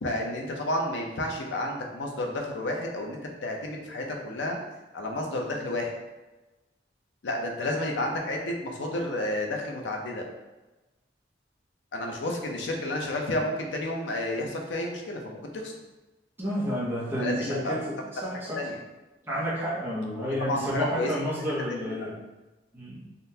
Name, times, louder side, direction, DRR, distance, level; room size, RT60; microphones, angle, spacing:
voice 1, 0.0-4.6 4.9-6.0 7.2-10.2 11.9-15.7 17.2-17.7 18.6-18.8 20.4-21.1, left 1 dB, 85° left, 1 dB, 0.6 m, -31 dB
voice 2, 16.4-18.7 19.2-22.2 22.7-23.0, equal, 10° right, -6 dB, 0.6 m, -31 dB
3.6 x 2.1 x 2.7 m, 1.1 s
head